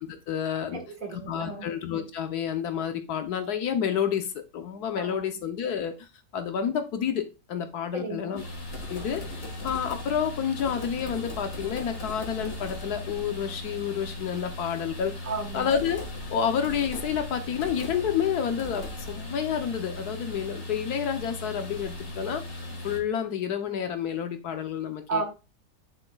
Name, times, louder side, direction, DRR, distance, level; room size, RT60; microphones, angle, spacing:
voice 1, 0.0-0.8 1.1-8.4 8.9-15.1 15.5-16.0 16.3-25.2, left 8 dB, 70° left, 7 dB, 1.3 m, -29 dB
voice 2, 0.7-1.7 5.0-5.2 7.9-8.4 15.2-15.7 25.1-25.2, right 4 dB, 55° right, 4 dB, 1.9 m, -33 dB
sound 1, 8.4-23.0, left 1 dB, 35° left, 1.9 m, -38 dB
10.0 x 6.0 x 2.3 m, 0.28 s
omnidirectional pair, 1.8 m